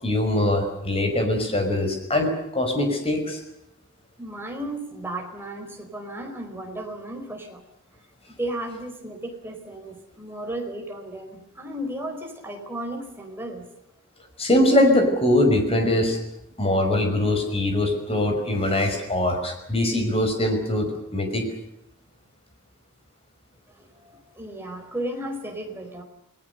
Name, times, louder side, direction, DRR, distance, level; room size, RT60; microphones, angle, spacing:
voice 1, 0.0-3.4 14.4-16.2 16.6-21.5, left 1 dB, 25° left, 5 dB, 5.4 m, -22 dB
voice 2, 4.2-7.6 8.4-13.7 23.8-26.0, right 1 dB, 10° right, 2 dB, 4.4 m, -34 dB
29.5 x 19.5 x 6.8 m, 0.82 s
head